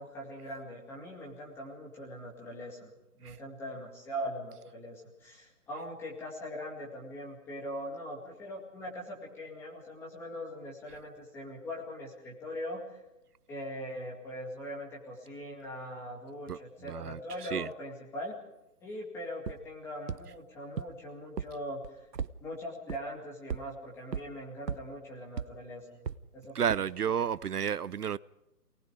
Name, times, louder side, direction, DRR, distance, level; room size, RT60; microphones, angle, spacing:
voice 1, 0.0-2.9 3.2-13.0 13.5-18.4 18.8-21.8 22.4-26.0 26.3-26.7 27.1-27.2, equal, 5° left, 2.1 m, -41 dB
voice 2, 16.9-17.2 17.5-17.7 26.5-28.2, right 8 dB, 70° right, 0.6 m, -31 dB
sound 1, 19.5-19.6 20.1-20.2 20.8-20.9 21.4-21.5 21.8-22.3 22.9-23.0 23.5-23.6 24.1-24.2 24.7-24.8 25.4-25.5 26.1-26.2 26.7-26.8, right 7 dB, 85° right, 1.1 m, -33 dB
28.0 x 19.0 x 5.0 m
hypercardioid pair, 165°, 48 cm